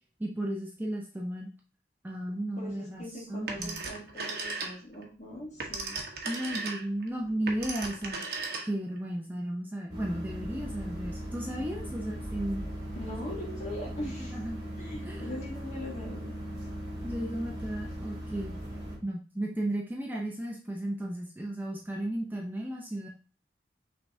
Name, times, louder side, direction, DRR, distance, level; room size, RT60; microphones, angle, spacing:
voice 1, 0.2-1.5 2.0-3.0 3.3-3.8 6.3-12.6 14.3-14.6 15.0-15.2 17.0-18.6 19.0-23.1, right 1 dB, 10° right, -1 dB, 0.5 m, -34 dB
voice 2, 2.6-6.0 12.9-14.4 14.8-16.4, left 1 dB, 40° left, -2 dB, 1.7 m, -41 dB
Telephone, 3.5-5.0 5.4-9.0, right 3 dB, 60° right, 0.9 m, -36 dB
sound 1, 9.9-19.0, equal, 30° right, 2.5 m, -38 dB
5.6 x 3.3 x 2.6 m, 0.35 s
head